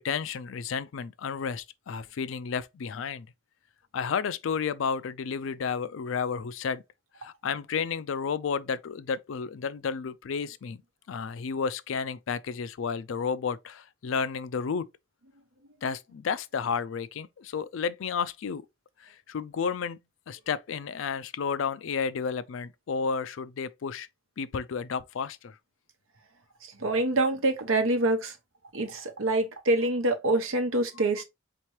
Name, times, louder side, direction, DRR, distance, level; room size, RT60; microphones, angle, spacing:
voice 1, 0.0-3.3 3.9-6.8 7.2-10.8 11.1-14.9 15.8-18.6 19.0-20.0 20.3-24.1 24.4-25.6, left 6 dB, 70° left, 0.4 m, -32 dB
voice 2, 26.8-28.3 28.7-31.2, right 2 dB, 80° right, 0.9 m, -26 dB
4.4 x 2.9 x 3.0 m
head